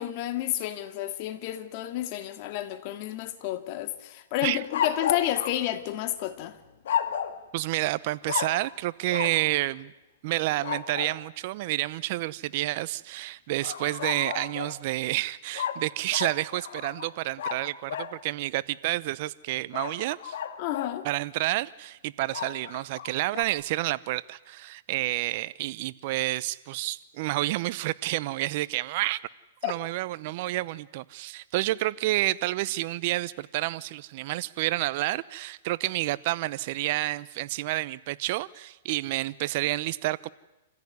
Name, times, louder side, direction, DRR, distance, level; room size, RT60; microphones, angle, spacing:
voice 1, 0.0-6.6 20.6-21.1 29.6-29.7, left 13 dB, 45° left, 2.2 m, -31 dB
sound 1, 4.7-6.3 6.8-7.4 8.3-8.7 9.1-9.4 10.6-11.2 13.6-14.8 15.5-18.2 19.7-21.0 22.3-23.4, left 8 dB, 70° left, 2.0 m, -33 dB
voice 2, 7.5-9.9 10.2-20.4 21.0-29.2 29.6-40.3, right 18 dB, 50° right, 0.7 m, -29 dB
28.0 x 16.0 x 9.6 m
hypercardioid pair, 135°, 0 cm